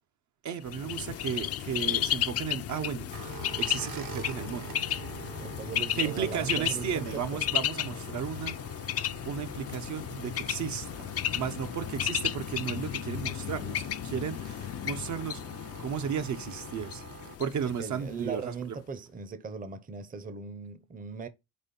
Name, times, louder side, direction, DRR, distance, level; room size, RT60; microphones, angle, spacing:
voice 1, 0.4-3.1 3.6-4.8 5.9-8.6 9.3-11.1 11.3-15.4 15.8-17.0 17.4-18.8, right 7 dB, 55° right, 0.8 m, -34 dB
Bird, 0.7-18.4, left 11 dB, 45° left, 0.5 m, -34 dB
sound 1, 3.1-17.4, right 7 dB, 70° right, 1.4 m, -46 dB
voice 2, 5.4-7.4 17.6-21.3, right 5 dB, 25° right, 0.7 m, -39 dB
4.4 x 4.3 x 5.2 m
cardioid pair, 115°, 34 cm